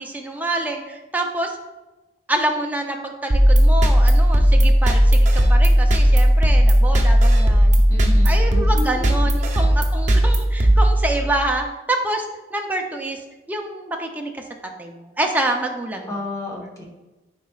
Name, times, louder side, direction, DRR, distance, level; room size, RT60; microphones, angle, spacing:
voice 1, 0.0-1.5 2.3-7.8 8.3-12.3 12.5-13.2 13.5-14.4 14.8-16.1, right 1 dB, 10° right, 2 dB, 0.6 m, -26 dB
sound 1, 3.3-11.5, equal, 40° right, 0.8 m, -15 dB
voice 2, 7.9-9.2 16.1-16.8, left 1 dB, 20° left, -1 dB, 1.1 m, -31 dB
9.4 x 4.2 x 2.4 m, 1.1 s
head